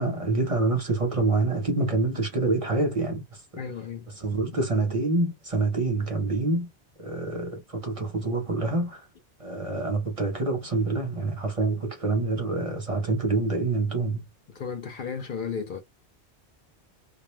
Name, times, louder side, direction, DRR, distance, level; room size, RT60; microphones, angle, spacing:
voice 1, 0.0-3.4 4.2-6.7 7.0-9.1 9.4-14.3, right 3 dB, 35° right, 0.7 m, -26 dB
voice 2, 3.6-4.1 14.5-15.8, left 6 dB, 60° left, 0.6 m, -34 dB
2.3 x 2.1 x 3.0 m
omnidirectional pair, 1.1 m